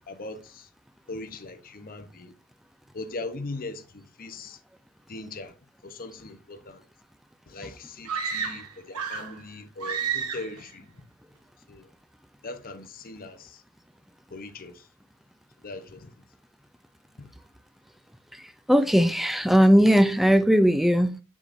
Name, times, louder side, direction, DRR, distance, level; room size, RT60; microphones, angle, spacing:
voice 1, 0.1-0.7 1.1-2.3 2.9-4.6 5.1-5.5 5.8-6.8 7.5-10.9 11.7-11.9 12.4-13.6 14.3-14.9 15.6-16.1 17.2-17.3, left 2 dB, 40° left, 0.8 m, -40 dB
sound 1, 8.0-9.4 9.8-10.6, right 6 dB, 90° right, 1.4 m, -31 dB
voice 2, 18.7-21.1, equal, ahead, 0.4 m, -18 dB
7.3 x 6.5 x 2.6 m
head